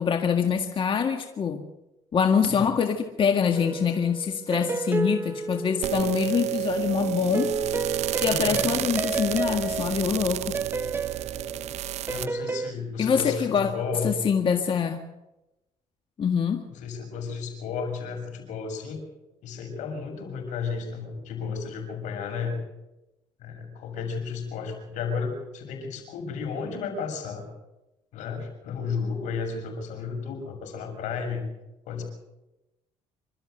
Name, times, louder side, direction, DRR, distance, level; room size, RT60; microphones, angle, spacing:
voice 1, 0.0-1.6 2.1-7.5 8.2-10.5 13.0-13.7 14.0-15.1 16.2-16.7, left 6 dB, 45° left, 5 dB, 1.9 m, -25 dB
sound 1, 3.5-6.4 7.3-12.7, right 3 dB, 20° right, 0.7 m, -32 dB
sound 2, 5.8-12.3, right 13 dB, 65° right, 0.6 m, -30 dB
voice 2, 8.2-8.8 12.1-14.2 16.7-19.0 19.4-22.6 23.4-27.5 28.1-31.4 31.9-32.0, left 5 dB, 80° left, 5 dB, 6.5 m, -33 dB
26.5 x 13.0 x 7.9 m, 0.96 s
cardioid pair, 100°, 12 cm